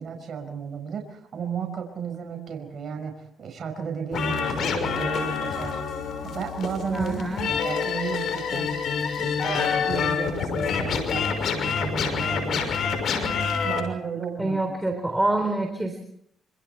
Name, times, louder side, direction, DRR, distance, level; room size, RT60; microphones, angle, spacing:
voice 1, 0.0-5.8 6.2-8.8 9.2-15.0, right 6 dB, 50° right, 4 dB, 5.2 m, -34 dB
sound 1, 4.1-13.8, left 6 dB, 65° left, 6.1 m, -27 dB
voice 2, 6.9-7.5 14.4-16.0, right 2 dB, 10° right, 5 dB, 3.8 m, -26 dB
27.0 x 26.5 x 4.5 m, 0.66 s
cardioid pair, 90°, 0 cm